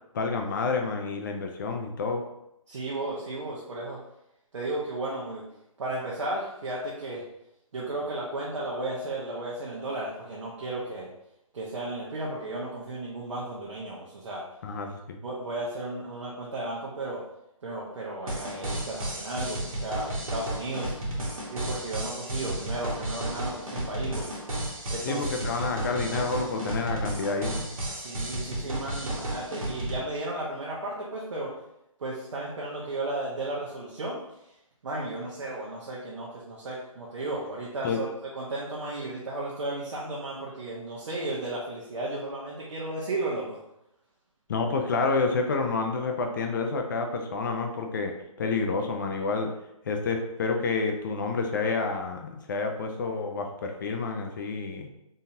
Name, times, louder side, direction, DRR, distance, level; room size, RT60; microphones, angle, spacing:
voice 1, 0.1-2.2 14.6-15.2 25.0-27.7 37.8-38.0 44.5-49.5 49.9-54.9, left 4 dB, 35° left, 4 dB, 0.5 m, -29 dB
voice 2, 2.7-4.0 4.5-5.4 5.8-7.3 7.7-11.1 11.5-14.4 15.2-17.2 17.6-20.9 21.5-24.4 24.9-25.3 27.9-31.5 32.0-34.2 34.8-38.1 38.3-43.6, right 2 dB, 55° right, -5 dB, 1.0 m, -34 dB
sound 1, 18.3-30.0, right 1 dB, 75° right, 1.5 m, -33 dB
4.0 x 3.9 x 2.7 m, 0.83 s
figure-of-eight pair, 145°, 18 cm